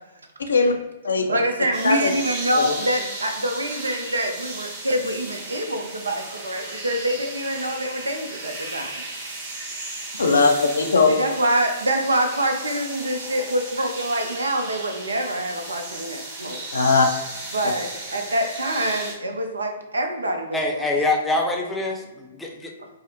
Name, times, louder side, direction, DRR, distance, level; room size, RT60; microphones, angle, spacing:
voice 1, 0.4-0.7 1.0-1.3 1.8-2.1 10.2-11.1 16.7-17.1, left 4 dB, 80° left, 4 dB, 0.5 m, -18 dB
voice 2, 1.3-9.0 11.1-16.7 17.5-20.8 22.8-22.9, right 1 dB, 85° right, 4 dB, 0.6 m, -25 dB
sound 1, 1.7-19.1, right 2 dB, 45° right, 1.2 m, -35 dB
voice 3, 20.5-22.7, left 2 dB, 5° left, -1 dB, 0.6 m, -25 dB
4.7 x 2.0 x 2.8 m, 1.1 s
figure-of-eight pair, 120°, 0 cm